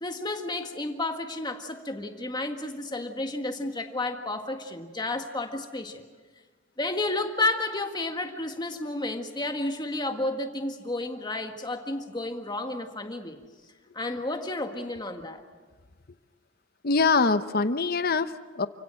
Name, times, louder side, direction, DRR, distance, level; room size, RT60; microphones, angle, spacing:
voice 1, 0.0-6.0 6.8-13.4 13.9-15.4, left 2 dB, 20° left, 5 dB, 1.8 m, -31 dB
voice 2, 16.8-18.7, left 4 dB, 50° left, 11 dB, 0.9 m, -24 dB
29.0 x 17.0 x 7.8 m, 1.4 s
head